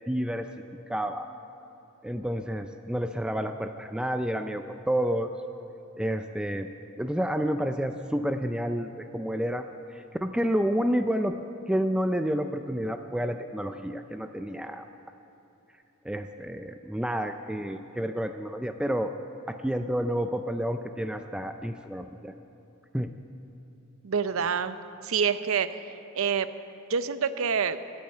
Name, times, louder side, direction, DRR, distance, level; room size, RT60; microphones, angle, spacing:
voice 1, 0.1-0.5 0.9-1.3 2.0-5.3 6.0-6.7 7.0-9.7 9.9-11.3 11.7-14.9 16.0-19.1 19.5-22.3 22.9-23.1, equal, 5° right, 7 dB, 0.4 m, -29 dB
voice 2, 24.0-24.8 25.0-25.8 26.1-26.5 26.9-27.8, right 6 dB, 70° right, 12 dB, 0.6 m, -26 dB
14.5 x 8.8 x 8.8 m, 2.9 s
head